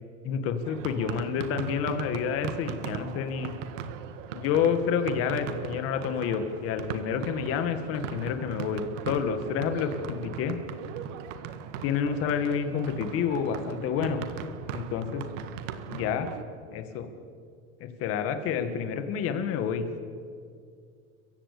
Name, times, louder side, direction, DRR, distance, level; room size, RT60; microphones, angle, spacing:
voice 1, 0.2-3.5 4.3-10.6 11.8-14.2 14.7-15.2 15.9-16.3 16.7-17.1 18.0-19.9, left 7 dB, 35° left, 7 dB, 2.0 m, -29 dB
sound 1, 0.6-16.4, right 8 dB, 80° right, 1.7 m, -39 dB
30.0 x 15.5 x 8.5 m, 2.2 s
supercardioid pair, 175°, 38 cm